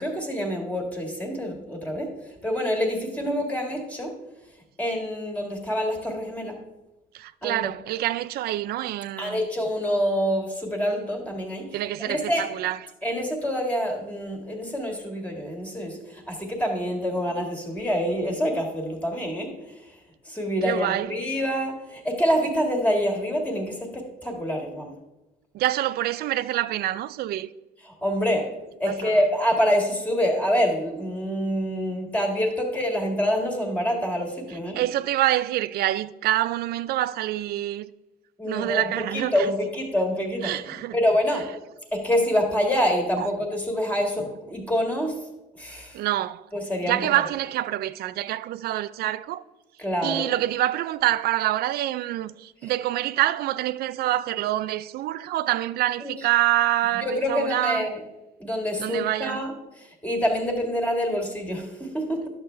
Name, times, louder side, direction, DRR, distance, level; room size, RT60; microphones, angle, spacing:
voice 1, 0.0-2.1 2.4-4.1 4.8-6.6 7.4-7.7 9.2-11.7 12.0-12.5 13.0-19.9 20.3-24.9 27.8-28.5 28.8-34.8 38.4-41.5 41.9-45.2 45.6-46.0 46.5-47.2 49.8-50.3 52.6-52.7 56.0-56.1 57.0-58.0 58.4-59.5 59.8-62.3, equal, 10° left, 1.9 m, -26 dB
voice 2, 7.1-9.5 11.7-12.8 20.6-21.1 25.5-27.5 28.9-29.2 34.7-37.9 38.4-39.3 40.4-41.0 43.2-43.3 45.9-46.4 46.8-49.4 50.0-57.9 58.8-59.4, right 14 dB, 65° right, 0.4 m, -26 dB
11.0 x 6.8 x 3.3 m
cardioid pair, 110°, 17 cm